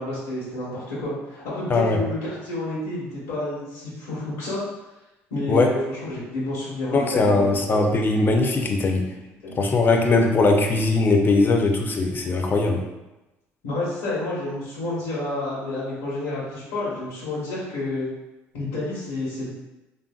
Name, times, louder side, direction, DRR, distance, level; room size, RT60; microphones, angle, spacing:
voice 1, 0.0-4.6 5.3-7.6 9.4-9.6 13.6-18.1 18.5-19.5, left 2 dB, 90° left, -8 dB, 1.0 m, -29 dB
voice 2, 6.9-9.0 9.6-12.8, left 3 dB, 35° left, 3 dB, 0.5 m, -20 dB
3.2 x 2.6 x 2.3 m, 1.0 s
supercardioid pair, 80°, 6 cm